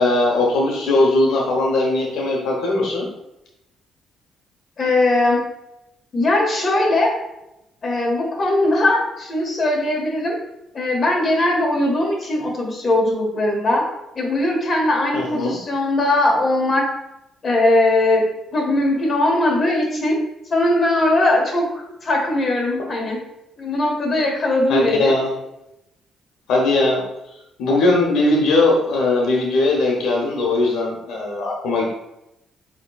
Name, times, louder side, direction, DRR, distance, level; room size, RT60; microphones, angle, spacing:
voice 1, 0.0-3.1 15.1-15.6 24.7-25.3 26.5-27.0 27.6-31.8, left 2 dB, 85° left, -1 dB, 1.0 m, -19 dB
voice 2, 4.8-5.4 6.1-7.1 7.8-10.4 10.7-13.9 14.1-16.9 17.4-18.2 18.5-20.2 20.5-23.2 23.6-25.1, left 1 dB, 40° left, -1 dB, 1.5 m, -19 dB
7.1 x 3.1 x 2.4 m, 0.86 s
cardioid pair, 90°, 0 cm